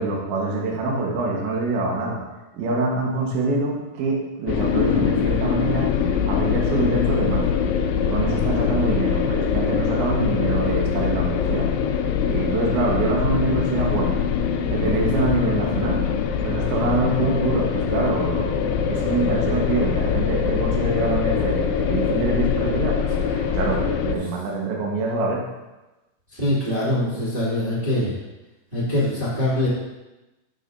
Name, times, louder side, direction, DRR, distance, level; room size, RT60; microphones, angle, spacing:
voice 1, 0.0-2.2 2.5-7.6 8.0-11.7 12.2-14.2 14.7-16.0 16.4-25.4, right 3 dB, 80° right, -1 dB, 3.5 m, -25 dB
sound 1, 4.5-24.2, left 7 dB, 90° left, 3.0 m, -23 dB
voice 2, 26.3-28.1 28.7-29.7, left 1 dB, 20° right, -10 dB, 1.3 m, -23 dB
10.5 x 6.8 x 2.7 m, 1.1 s
omnidirectional pair, 5.3 m